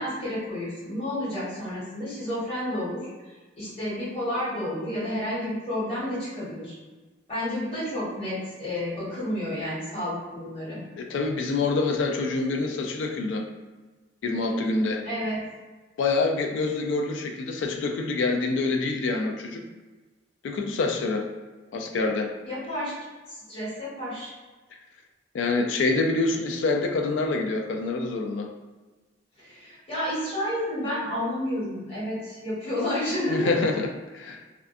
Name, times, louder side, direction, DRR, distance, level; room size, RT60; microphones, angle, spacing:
voice 1, 0.0-6.7 7.3-10.8 15.0-15.4 22.5-22.9 23.3-24.3 29.4-33.5, left 1 dB, 30° left, -11 dB, 1.3 m, -30 dB
voice 2, 11.0-13.4 14.2-15.0 16.0-19.6 20.4-21.2 21.7-22.3 25.3-28.5 33.3-34.4, left 3 dB, 85° left, 3 dB, 0.3 m, -26 dB
2.4 x 2.3 x 2.5 m, 1.2 s
head